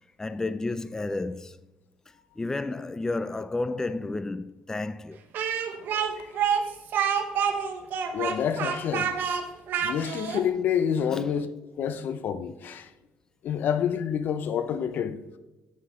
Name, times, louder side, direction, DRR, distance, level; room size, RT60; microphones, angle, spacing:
voice 1, 0.2-1.7 2.4-5.2 11.1-11.2, left 2 dB, 15° left, 0.4 m, -31 dB
Speech, 5.3-10.4, right 7 dB, 65° right, 1.0 m, -27 dB
voice 2, 5.9-6.3 7.0-7.2 8.1-9.1 9.8-11.5 11.8-12.9 13.4-15.2, left 8 dB, 65° left, 0.7 m, -28 dB
8.7 x 7.3 x 3.6 m
supercardioid pair, 70°, 4 cm